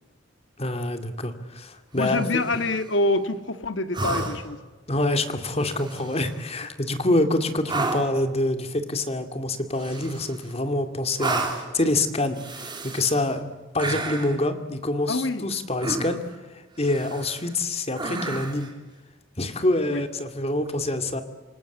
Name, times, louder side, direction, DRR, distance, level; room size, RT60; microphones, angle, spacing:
voice 1, 0.6-2.4 4.9-16.2 16.8-18.7 19.4-21.2, left 2 dB, 35° left, 8 dB, 2.3 m, -26 dB
voice 2, 1.9-4.6 15.1-15.5 19.9-20.0, left 2 dB, 75° left, 10 dB, 1.7 m, -26 dB
sound 1, 2.0-2.7 3.9-4.6 5.6-6.3 7.7-8.2 9.8-10.5 11.2-11.8 12.3-13.3 13.8-14.4 15.8-16.4 16.8-17.5 18.0-18.7 20.6-20.7, right 3 dB, 25° right, 3.5 m, -31 dB
27.0 x 19.5 x 8.4 m, 1.2 s
head